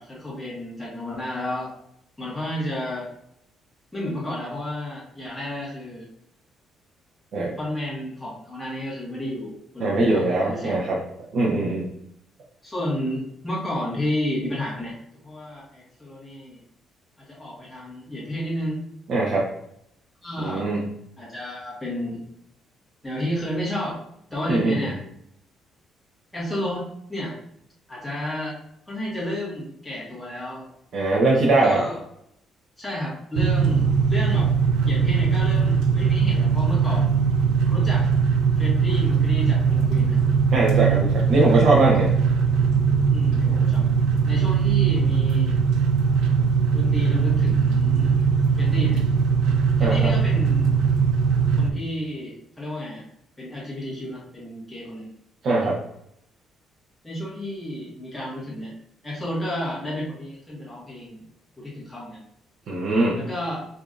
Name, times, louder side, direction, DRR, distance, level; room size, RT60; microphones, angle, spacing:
voice 1, 0.0-1.7 2.2-3.1 3.9-6.1 7.6-10.9 12.6-16.6 17.3-18.8 20.2-20.7 21.2-22.2 23.0-24.0 24.3-25.0 26.3-27.3 27.9-28.6 28.9-30.7 31.4-32.0 32.8-34.5 34.8-37.3 37.6-38.1 38.5-40.2 43.1-43.9 44.2-45.5 46.7-48.1 48.5-49.0 49.8-50.7 51.6-53.0 53.4-55.1 57.0-58.7 59.0-61.2 61.6-62.2 63.1-63.7, left 1 dB, 5° left, -6 dB, 1.4 m, -31 dB
voice 2, 9.8-11.0 11.3-11.9 19.1-19.5 20.4-20.9 24.5-24.9 30.9-31.8 40.5-42.1 49.8-50.1 55.4-55.8 62.7-63.2, right 2 dB, 50° right, -4 dB, 0.7 m, -21 dB
sound 1, 33.3-51.7, right 6 dB, 90° right, 0.4 m, -20 dB
4.9 x 2.6 x 2.5 m, 0.74 s
cardioid pair, 150°, 0 cm